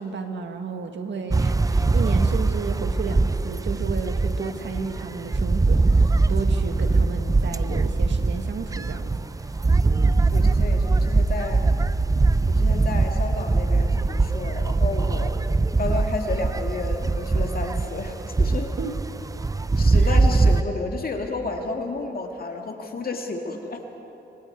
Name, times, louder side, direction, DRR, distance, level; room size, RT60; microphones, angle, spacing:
voice 1, 0.0-9.1 9.8-10.2 18.8-18.9 19.9-20.1, right 5 dB, 65° right, 5 dB, 1.8 m, -33 dB
sound 1, 1.3-20.6, right 3 dB, 15° right, 0.5 m, -22 dB
voice 2, 10.3-11.6 12.5-15.4 15.8-18.7 19.8-23.8, left 3 dB, 50° left, 2 dB, 2.1 m, -31 dB
26.5 x 24.0 x 4.7 m, 3.0 s
cardioid pair, 75°, 20 cm